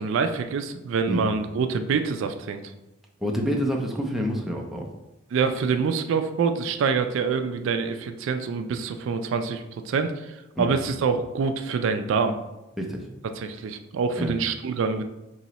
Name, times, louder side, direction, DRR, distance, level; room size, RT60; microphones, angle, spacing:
voice 1, 0.0-2.6 5.3-12.3 13.4-15.0, right 5 dB, 65° right, 8 dB, 0.3 m, -26 dB
voice 2, 3.2-4.9 10.6-10.7 12.8-13.1 14.2-14.3, equal, ahead, -1 dB, 0.5 m, -27 dB
3.0 x 2.8 x 4.1 m, 0.97 s
head